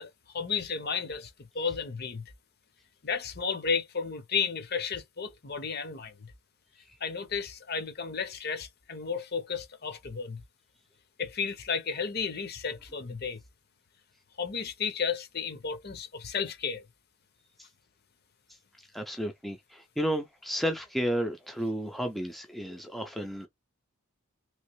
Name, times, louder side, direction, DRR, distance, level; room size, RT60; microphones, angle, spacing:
voice 1, 0.0-2.2 3.0-6.3 7.0-10.4 11.2-13.4 14.4-16.8, left 6 dB, 45° left, 0.7 m, -33 dB
voice 2, 18.9-23.5, equal, ahead, 0.4 m, -32 dB
3.2 x 3.0 x 3.0 m
head